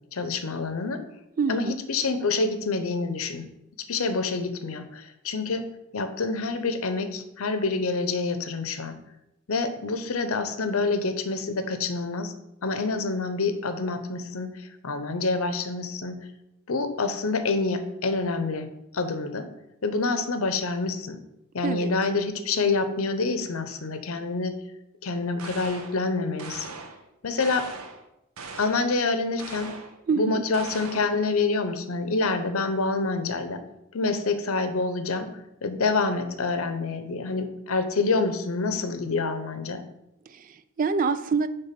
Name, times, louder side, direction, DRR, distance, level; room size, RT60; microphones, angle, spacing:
voice 1, 0.1-1.0 1.5-3.4 3.9-5.6 5.9-8.9 9.5-12.3 12.6-16.2 16.7-18.7 18.9-19.5 19.8-21.2 21.5-24.5 25.0-26.7 27.2-27.7 28.6-29.7 30.1-33.6 33.9-35.3 35.6-39.8, left 3 dB, 80° left, 9 dB, 0.7 m, -27 dB
voice 2, 1.4-1.8 21.6-21.9 30.1-30.4 40.3-41.5, right 5 dB, 40° right, 12 dB, 0.3 m, -26 dB
sound 1, 25.4-26.0 26.4-27.0 27.4-28.0 28.4-28.9 29.4-30.0 30.5-31.2, right 4 dB, 90° right, 0.8 m, -40 dB
6.9 x 3.5 x 5.9 m, 0.88 s
head